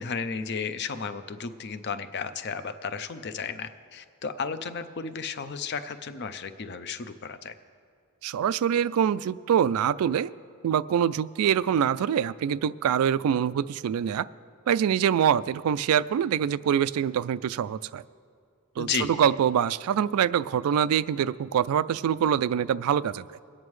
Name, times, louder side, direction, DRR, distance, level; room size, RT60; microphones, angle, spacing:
voice 1, 0.0-7.5 18.8-19.2, left 5 dB, 50° left, 10 dB, 0.5 m, -33 dB
voice 2, 8.2-10.3 10.6-14.3 14.7-18.0 18.8-23.3, right 8 dB, 75° right, 18 dB, 0.3 m, -24 dB
23.0 x 8.8 x 3.2 m, 2.2 s
head